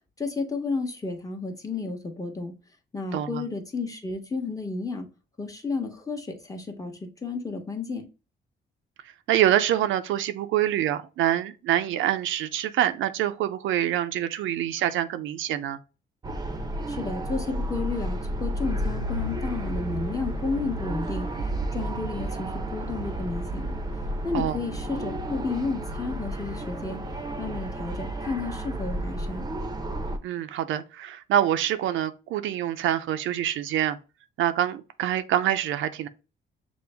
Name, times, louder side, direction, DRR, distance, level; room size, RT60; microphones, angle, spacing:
voice 1, 0.2-2.5 2.9-5.1 5.4-8.1 16.9-21.3 21.7-23.8 24.2-27.0 27.4-29.5, left 4 dB, 15° left, 0.9 m, -32 dB
voice 2, 3.1-3.4 9.3-15.8 24.3-24.6 30.2-34.0 34.4-36.1, right 11 dB, 80° right, 0.4 m, -25 dB
sound 1, 16.2-30.2, right 1 dB, 20° right, 0.6 m, -32 dB
6.1 x 2.1 x 3.3 m
cardioid pair, 90°, 20 cm